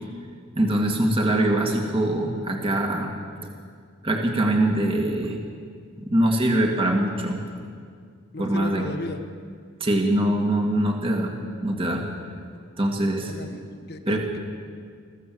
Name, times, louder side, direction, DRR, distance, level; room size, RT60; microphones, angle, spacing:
voice 1, 0.5-3.1 4.0-5.4 6.0-7.4 8.4-8.9 9.8-11.3 11.6-12.1 12.8-13.3 14.1-14.2, right 1 dB, 25° right, 1 dB, 2.2 m, -23 dB
voice 2, 8.3-9.2 13.3-13.6 13.9-14.4, left 2 dB, 55° left, 6 dB, 1.4 m, -35 dB
22.0 x 15.0 x 7.8 m, 2.1 s
head